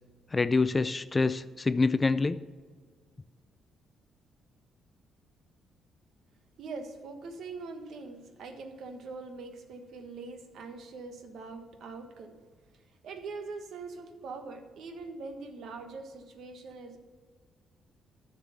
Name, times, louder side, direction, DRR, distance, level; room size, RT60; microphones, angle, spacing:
voice 1, 0.3-2.4, left 3 dB, 25° left, 15 dB, 0.4 m, -26 dB
voice 2, 6.6-12.4 13.0-17.0, right 3 dB, 70° right, 6 dB, 1.3 m, -42 dB
10.0 x 6.8 x 5.9 m, 1.5 s
cardioid pair, 90°, 0 cm